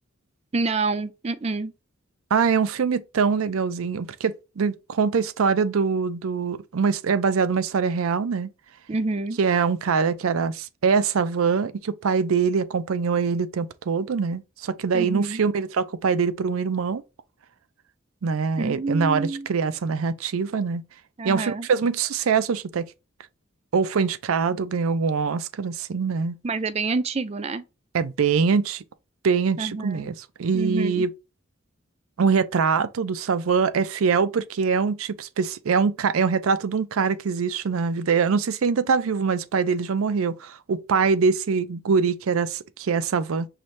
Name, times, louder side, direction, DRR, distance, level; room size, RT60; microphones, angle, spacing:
voice 1, 0.5-1.7 8.9-9.4 14.9-15.4 18.6-19.5 21.2-21.7 26.4-27.6 29.6-30.1 30.5-31.1, right 3 dB, 30° right, 0.4 m, -27 dB
voice 2, 2.3-8.5 9.4-17.0 18.2-20.8 21.2-22.9 23.7-26.4 27.9-28.8 29.2-31.1 32.2-43.5, right 5 dB, 90° right, 0.5 m, -23 dB
5.7 x 2.6 x 3.2 m
head